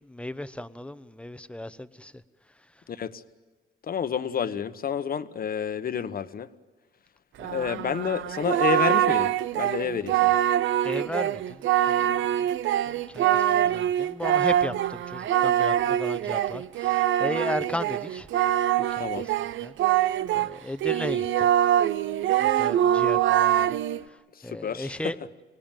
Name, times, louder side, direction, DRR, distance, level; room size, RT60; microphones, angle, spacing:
voice 1, 0.0-2.2 7.4-7.6 10.8-12.1 12.4-12.5 12.9-18.3 18.8-21.5 22.4-25.2, left 1 dB, 5° left, 13 dB, 0.9 m, -36 dB
voice 2, 2.9-3.2 3.8-6.5 7.4-10.3 19.0-19.3 24.3-25.0, left 7 dB, 45° left, 11 dB, 1.2 m, -30 dB
Singing, 7.4-20.5 20.8-24.0, right 11 dB, 75° right, 0.7 m, -24 dB
25.5 x 19.0 x 9.1 m, 1.4 s
cardioid pair, 90°, 20 cm